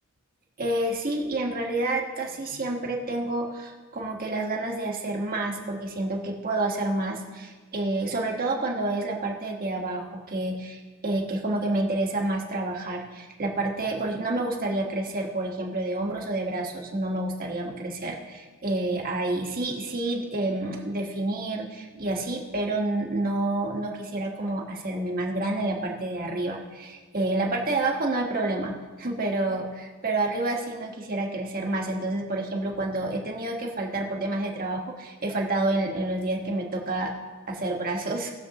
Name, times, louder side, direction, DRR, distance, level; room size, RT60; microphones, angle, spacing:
voice 1, 0.6-37.1 37.5-38.3, right 2 dB, 45° right, 0 dB, 1.5 m, -29 dB
19.0 x 6.9 x 3.0 m, 1.4 s
head